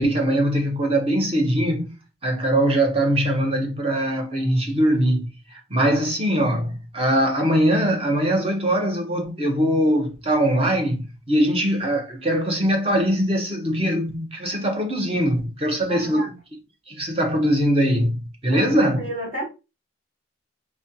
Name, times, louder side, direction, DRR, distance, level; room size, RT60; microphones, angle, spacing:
voice 1, 0.0-16.3 16.9-19.1, right 1 dB, 30° right, 1.0 m, -22 dB
voice 2, 15.9-16.4 18.5-19.4, right 1 dB, 50° right, 2.5 m, -32 dB
4.3 x 3.4 x 2.7 m
head